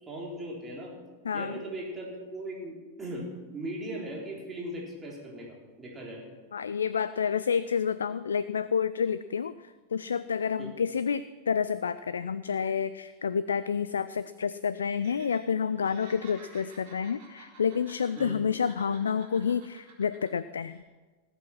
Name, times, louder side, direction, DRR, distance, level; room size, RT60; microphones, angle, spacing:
voice 1, 0.1-0.9 1.3-6.3 10.6-10.7 18.2-18.4, right 1 dB, 20° right, -3 dB, 3.9 m, -38 dB
voice 2, 1.2-1.6 6.5-20.8, left 6 dB, 70° left, 15 dB, 0.3 m, -29 dB
Laughter, 14.9-15.4 15.7-18.4 18.6-20.3 20.6-20.8, right 3 dB, 45° right, 4.7 m, -51 dB
18.5 x 7.9 x 6.1 m, 1.3 s
figure-of-eight pair, 90°, 0 cm